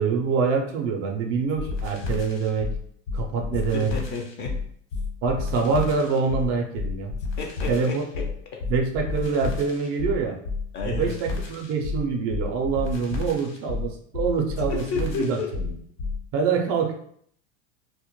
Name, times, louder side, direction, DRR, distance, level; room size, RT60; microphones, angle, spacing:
voice 1, 0.0-2.7 3.1-3.9 5.2-7.1 7.7-8.0 8.7-10.4 10.8-15.7 16.3-16.9, right 5 dB, 40° right, 2 dB, 0.4 m, -25 dB
sound 1, 1.5-16.2, left 4 dB, 70° left, 1.0 m, -31 dB
voice 2, 3.7-4.6 7.4-8.6 10.7-11.2 14.7-15.5, left 5 dB, 30° left, 1 dB, 0.4 m, -32 dB
2.1 x 2.0 x 2.9 m, 0.65 s
supercardioid pair, 120°, 37 cm